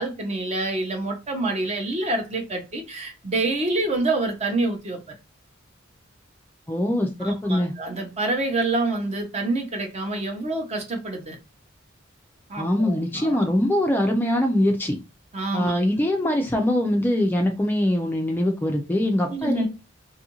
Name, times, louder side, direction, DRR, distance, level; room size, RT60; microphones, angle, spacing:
voice 1, 0.0-5.0 7.2-11.4 12.5-13.4 15.3-15.8 19.3-19.7, right 2 dB, 35° right, 0.7 m, -27 dB
voice 2, 6.7-7.7 12.6-15.0 15.5-19.7, left 1 dB, 10° left, 0.3 m, -23 dB
2.6 x 2.5 x 2.8 m
head